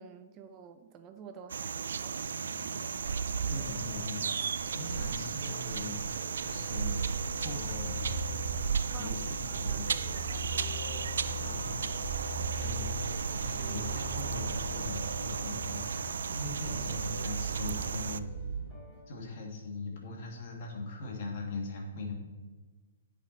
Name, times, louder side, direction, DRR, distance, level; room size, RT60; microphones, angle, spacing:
voice 1, 0.0-2.7 8.9-10.5, right 7 dB, 25° right, 8 dB, 0.6 m, -50 dB
sound 1, 1.5-18.2, right 6 dB, 75° right, 0.4 m, -35 dB
sound 2, 2.1-19.0, left 2 dB, 15° left, 2.8 m, -50 dB
voice 2, 3.1-8.1 9.0-9.9 11.4-18.3 19.1-22.2, left 3 dB, 50° left, 0 dB, 2.2 m, -41 dB
sound 3, 7.2-18.6, right 1 dB, 50° right, 2.0 m, -39 dB
10.5 x 6.2 x 4.1 m, 1.3 s
hypercardioid pair, 145°, 0 cm